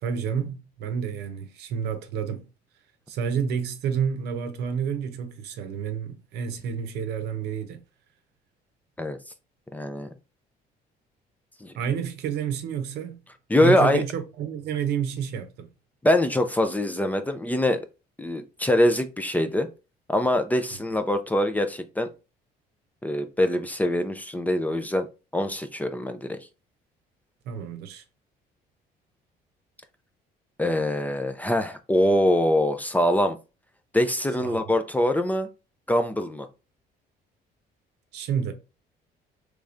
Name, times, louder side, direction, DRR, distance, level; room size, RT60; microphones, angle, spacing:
voice 1, 0.0-2.5 3.1-7.8 11.7-13.2 13.6-15.7 27.5-28.0 34.4-34.6 38.1-38.5, right 7 dB, 80° right, 0.7 m, -29 dB
voice 2, 9.7-10.1 11.6-11.7 13.5-14.0 16.0-17.8 18.2-19.7 20.1-22.1 23.0-25.1 25.3-26.4 30.6-33.4 33.9-35.5 35.9-36.5, left 1 dB, 10° left, 0.4 m, -23 dB
3.4 x 3.2 x 2.5 m
cardioid pair, 110°, 17 cm